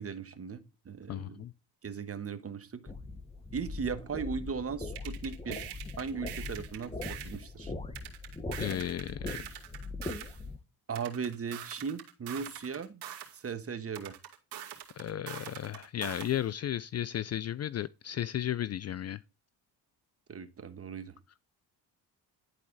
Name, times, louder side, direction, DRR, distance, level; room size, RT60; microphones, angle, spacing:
voice 1, 0.0-1.5 1.8-2.8 3.5-7.7 10.9-13.0 13.3-14.2 20.3-21.2, right 6 dB, 35° right, 1.2 m, -38 dB
voice 2, 1.1-1.5 8.6-9.4 15.0-19.2, left 11 dB, 40° left, 0.4 m, -34 dB
sound 1, 2.9-10.6, left 3 dB, 15° left, 1.1 m, -41 dB
sound 2, 5.0-7.4 8.0-10.4 11.0-13.4 13.9-16.4, right 11 dB, 75° right, 2.3 m, -44 dB
11.0 x 4.3 x 3.9 m
cardioid pair, 80°, 41 cm